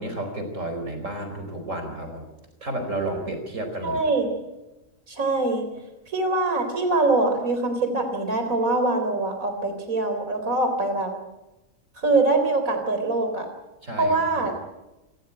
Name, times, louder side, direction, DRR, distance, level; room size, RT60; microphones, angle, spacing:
voice 1, 0.0-2.3 2.6-4.0 13.8-14.5, right 1 dB, 65° right, 6 dB, 4.9 m, -31 dB
voice 2, 3.8-4.3 5.1-5.6 6.1-11.1 12.0-13.5 14.0-14.5, right 2 dB, 80° right, 6 dB, 4.4 m, -23 dB
28.5 x 14.5 x 9.0 m, 0.99 s
omnidirectional pair, 1.4 m